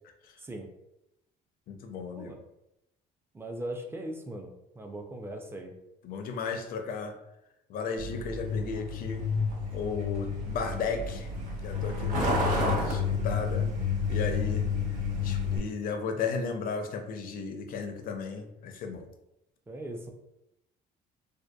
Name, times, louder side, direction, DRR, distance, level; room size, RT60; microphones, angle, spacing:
voice 1, 1.7-2.3 6.0-7.2 7.7-9.2 9.7-11.3 11.6-13.7 14.1-14.7 15.2-19.1, left 5 dB, 60° left, 6 dB, 0.4 m, -35 dB
voice 2, 3.3-4.5 4.8-5.7 19.7-20.1, right 1 dB, 15° right, 3 dB, 0.3 m, -39 dB
Truck, 8.0-15.6, left 4 dB, 50° right, 0.8 m, -30 dB
2.7 x 2.2 x 2.2 m, 0.84 s
cardioid pair, 110°, 17 cm